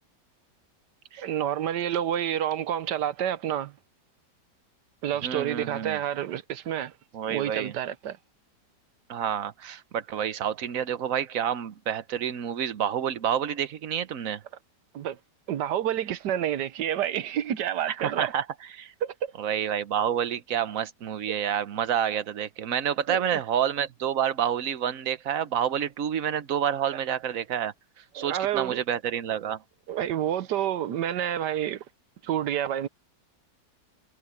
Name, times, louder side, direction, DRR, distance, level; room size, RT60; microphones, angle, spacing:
voice 1, 1.2-3.7 5.0-6.9 7.3-8.2 14.9-15.2 15.5-18.3 19.0-19.3 23.1-23.4 28.2-28.8 29.9-31.8 32.2-32.9, right 10 dB, 70° right, 1.4 m, -29 dB
voice 2, 5.2-6.0 7.1-7.7 9.1-14.4 17.9-18.4 18.7-18.9 19.4-27.7 28.1-29.6, right 9 dB, 55° right, 1.2 m, -28 dB
omnidirectional pair, 1.9 m